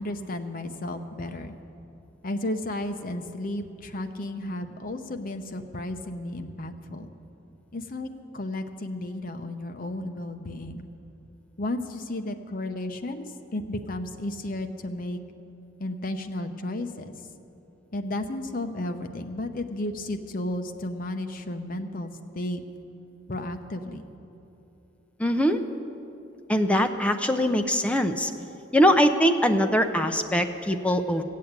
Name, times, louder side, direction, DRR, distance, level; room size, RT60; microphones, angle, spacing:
voice 1, 0.0-1.5 2.2-7.1 7.7-10.9 11.6-15.2 15.8-17.1 17.9-22.6 23.3-24.0, left 1 dB, 45° left, 7 dB, 0.8 m, -33 dB
voice 2, 25.2-25.6 26.5-28.3 28.7-31.2, equal, 5° left, 6 dB, 0.6 m, -22 dB
15.5 x 8.5 x 8.1 m, 2.8 s
head